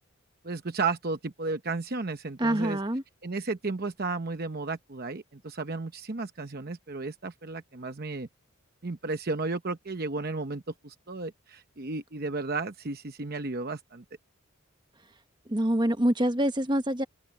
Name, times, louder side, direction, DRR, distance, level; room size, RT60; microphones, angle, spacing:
voice 1, 0.4-2.8 3.2-8.3 8.8-14.0, right 3 dB, 45° right, 0.9 m, -33 dB
voice 2, 2.4-3.0 15.5-17.0, right 1 dB, 20° right, 1.2 m, -25 dB
head